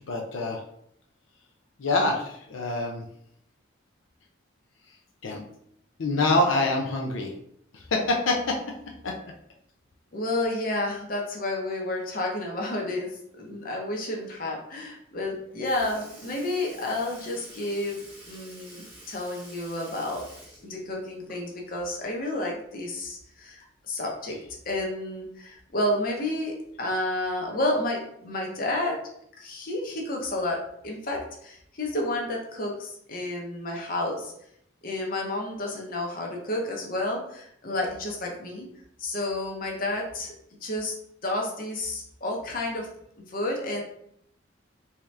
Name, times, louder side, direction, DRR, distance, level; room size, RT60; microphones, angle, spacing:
voice 1, 0.1-0.6 1.8-3.0 5.2-5.4 6.0-7.3 7.7-8.6 9.0-9.1, left 2 dB, 80° left, 1 dB, 0.6 m, -25 dB
voice 2, 10.1-20.3 20.6-24.4 24.6-29.0 29.4-34.3 34.8-38.7 39.0-40.3 40.6-40.9 41.2-42.9 43.3-43.8, left 1 dB, 45° left, 0 dB, 0.8 m, -30 dB
Sink (filling or washing) / Liquid, 15.2-15.3 15.6-21.7 22.1-22.2 23.7-23.8 24.8-24.9 25.7-25.9 26.7-26.8, right 1 dB, 10° right, 1.1 m, -49 dB
3.6 x 2.8 x 3.2 m, 0.71 s
head